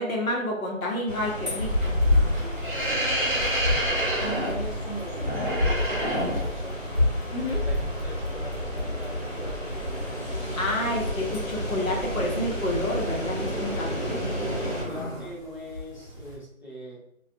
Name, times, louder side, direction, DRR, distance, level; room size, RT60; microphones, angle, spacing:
voice 1, 0.0-1.9 7.3-7.6 10.6-14.2, left 1 dB, 75° left, -1 dB, 1.0 m, -29 dB
sound 1, 1.1-14.8, equal, 50° left, 1.4 m, -33 dB
sound 2, 1.6-14.5 14.8-15.3 15.7-16.3, left 1 dB, 35° right, 0.7 m, -28 dB
voice 2, 2.3-6.8 7.3-10.0 13.8-14.3 14.7-17.0, right 1 dB, 35° left, -8 dB, 0.8 m, -40 dB
2.5 x 2.4 x 2.3 m, 0.77 s
figure-of-eight pair, 175°, 41 cm